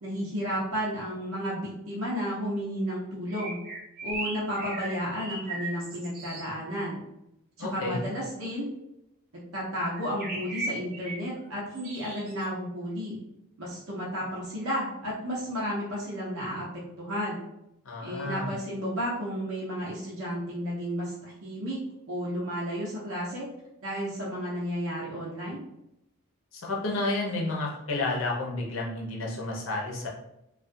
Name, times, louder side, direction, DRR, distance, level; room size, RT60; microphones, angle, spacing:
voice 1, 0.0-3.6 4.0-7.0 7.6-8.7 9.3-13.2 13.6-17.4 18.0-21.8 22.1-23.5 23.8-25.6, equal, 80° right, -5 dB, 0.7 m, -32 dB
sound 1, 3.3-6.5 9.9-11.2 11.7-12.5, right 2 dB, 45° right, 0.7 m, -37 dB
voice 2, 7.6-8.0 17.8-18.5 26.5-30.1, left 2 dB, 65° left, -2 dB, 0.7 m, -31 dB
2.3 x 2.3 x 2.5 m, 0.84 s
head